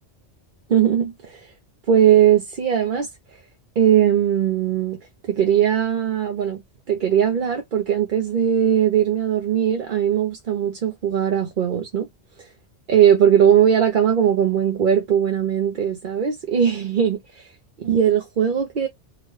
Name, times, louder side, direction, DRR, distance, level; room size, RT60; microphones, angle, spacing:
voice 1, 0.7-1.5 1.9-3.4 3.8-6.6 6.9-12.1 12.4-12.5 12.9-17.5 17.8-18.9, right 9 dB, 50° right, 0.7 m, -19 dB
3.9 x 2.2 x 3.2 m
omnidirectional pair, 1.2 m